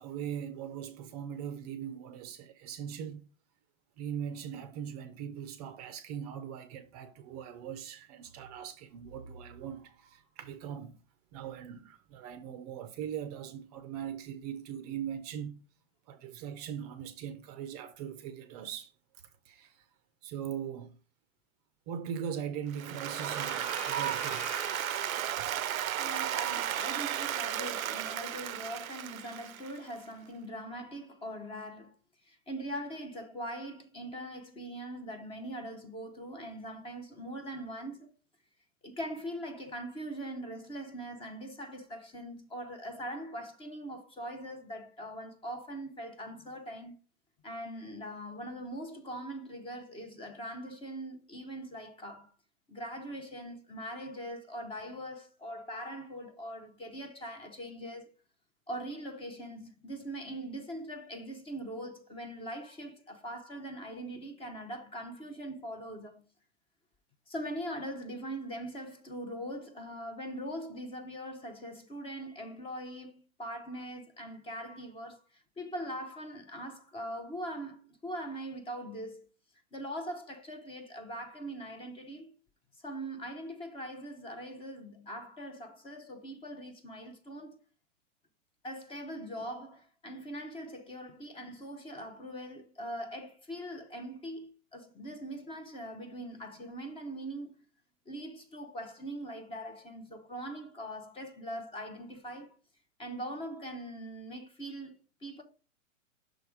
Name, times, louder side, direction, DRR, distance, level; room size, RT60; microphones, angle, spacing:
voice 1, 0.0-3.3 4.0-11.0 11.3-15.6 16.1-18.9 19.4-19.9 20.2-21.0 21.9-24.6 25.2-25.6, right 8 dB, 30° right, 0.5 m, -40 dB
Applause, 22.7-29.9, right 11 dB, 90° right, 0.5 m, -34 dB
sound 1, 23.1-25.3, left 11 dB, 60° left, 0.6 m, -46 dB
voice 2, 26.0-32.0 32.2-38.1 38.8-47.0 47.4-52.3 52.7-58.1 58.7-66.2 67.3-79.3 79.7-82.3 82.8-87.6 88.6-97.7 98.1-102.5 103.0-105.4, right 1 dB, 15° left, 0.6 m, -41 dB
6.2 x 3.3 x 4.8 m
hypercardioid pair, 125°, 40 cm